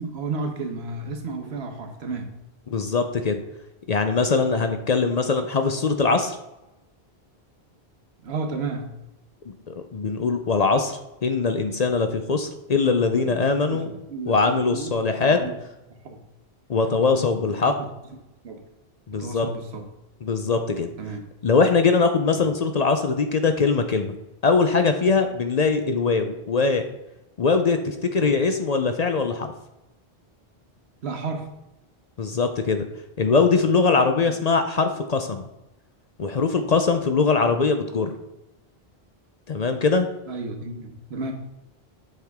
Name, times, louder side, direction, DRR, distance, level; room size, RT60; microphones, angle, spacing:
voice 1, 0.0-2.3 8.2-9.0 13.2-15.5 16.0-16.2 16.9-17.9 18.4-18.6 19.1-19.8 21.0-21.3 22.3-22.5 28.2-28.3 31.0-31.5 34.3-34.4 40.3-41.3, right 3 dB, 85° right, 5 dB, 1.3 m, -33 dB
voice 2, 2.7-3.4 3.9-6.4 9.5-13.9 14.3-15.4 16.7-17.7 19.1-19.5 20.2-20.9 21.4-24.1 24.4-26.9 27.4-29.5 32.2-32.8 33.2-35.4 36.2-38.1 39.5-40.1, left 4 dB, 50° left, 7 dB, 0.6 m, -22 dB
7.4 x 5.7 x 3.5 m, 0.94 s
omnidirectional pair, 1.1 m